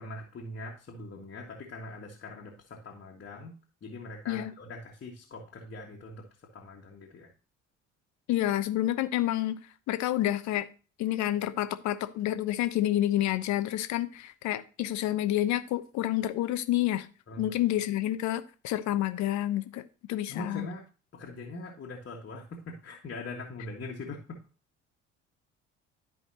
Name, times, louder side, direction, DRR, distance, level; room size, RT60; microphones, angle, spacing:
voice 1, 0.0-3.5 3.8-6.2 6.5-7.3 17.3-17.5 20.3-20.8 21.1-24.4, left 2 dB, 35° left, 1.7 m, -42 dB
voice 2, 8.3-9.6 9.9-10.7 11.0-17.1 17.4-19.8 20.1-20.7, left 13 dB, 50° left, 0.9 m, -29 dB
12.5 x 5.1 x 2.9 m
figure-of-eight pair, 50°, 36 cm